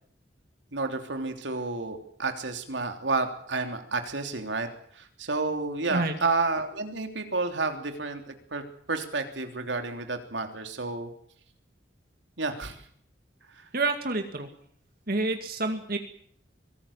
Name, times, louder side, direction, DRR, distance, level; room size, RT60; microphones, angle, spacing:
voice 1, 0.7-4.7 5.0-8.6 8.9-11.1 12.4-12.7, right 3 dB, 85° right, 6 dB, 3.3 m, -30 dB
voice 2, 13.7-14.5 15.1-16.0, right 2 dB, 55° right, 6 dB, 2.3 m, -28 dB
24.0 x 18.5 x 7.4 m, 0.64 s
head